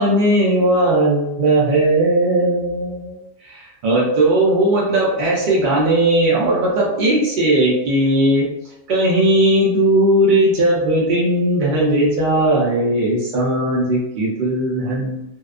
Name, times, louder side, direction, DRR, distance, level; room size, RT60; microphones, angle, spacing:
voice 1, 0.0-3.2 3.4-8.5 8.9-15.2, right 1 dB, 55° right, -5 dB, 0.5 m, -17 dB
2.7 x 2.1 x 2.4 m, 0.88 s
omnidirectional pair, 1.4 m